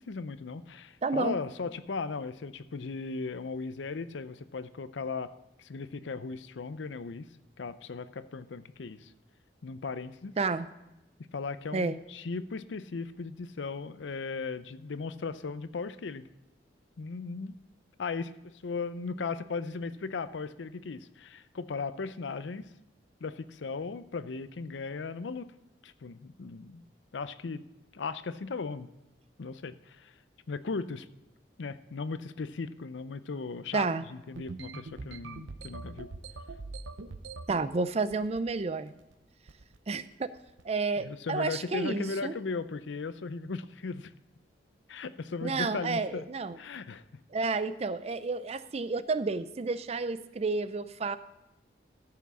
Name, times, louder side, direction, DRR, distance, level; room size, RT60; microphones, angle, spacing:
voice 1, 0.0-5.3 5.6-7.2 7.6-9.1 9.6-10.3 11.3-16.3 17.0-17.5 18.0-18.3 18.6-22.6 23.2-25.5 25.8-26.8 27.1-27.6 27.9-28.9 29.4-30.1 30.5-31.1 31.6-36.1 41.0-44.1 44.9-46.2 46.6-47.0, left 4 dB, 80° left, 14 dB, 0.5 m, -37 dB
voice 2, 1.0-1.4 10.4-10.7 11.7-12.0 33.7-34.1 37.5-38.9 39.9-40.3 40.6-42.3 45.4-46.6 47.3-51.2, right 4 dB, 35° right, 14 dB, 0.4 m, -30 dB
sound 1, 34.4-37.6 38.1-38.6 38.9-39.1 39.5-39.8 40.4-40.6, right 3 dB, 90° right, 0.7 m, -43 dB
13.5 x 5.9 x 6.1 m, 0.95 s
head